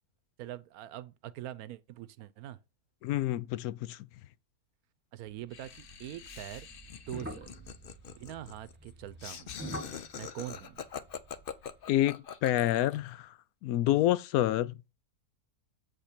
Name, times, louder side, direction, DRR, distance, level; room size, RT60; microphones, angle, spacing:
voice 1, 0.4-2.6 5.1-6.7 6.9-7.5 8.1-9.6 10.1-10.8, right 12 dB, 75° right, 1.1 m, -43 dB
voice 2, 3.0-4.1 11.9-13.4 13.6-14.8, left 14 dB, 75° left, 1.0 m, -28 dB
sound 1, 5.3-11.8, right 1 dB, 10° right, 1.3 m, -47 dB
Laughter, 5.5-13.1, left 7 dB, 50° left, 0.7 m, -44 dB
7.9 x 5.1 x 4.4 m
omnidirectional pair, 1.6 m